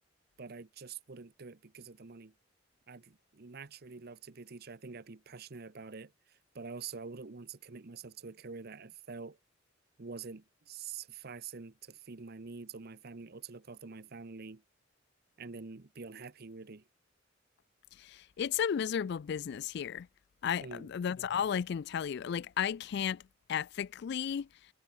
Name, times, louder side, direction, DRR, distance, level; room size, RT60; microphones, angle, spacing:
voice 1, 0.4-2.3 2.9-9.4 10.0-14.6 15.4-16.8 20.6-20.9, right 5 dB, 50° right, 0.8 m, -46 dB
voice 2, 18.0-20.1 20.4-23.2 23.5-24.5, left 8 dB, 55° left, 0.3 m, -34 dB
head